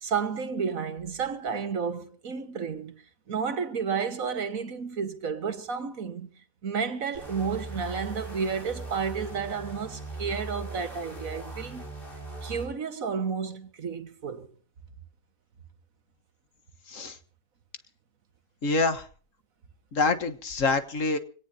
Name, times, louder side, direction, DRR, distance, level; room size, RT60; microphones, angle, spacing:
voice 1, 0.0-2.9 3.3-6.3 6.6-11.9 12.4-14.5, right 6 dB, 75° right, 1.9 m, -31 dB
sound 1, 7.1-12.7, right 2 dB, 40° left, 6.2 m, -39 dB
voice 2, 18.6-19.0 19.9-21.2, left 3 dB, 65° left, 1.8 m, -26 dB
25.0 x 18.0 x 2.8 m
omnidirectional pair, 1.5 m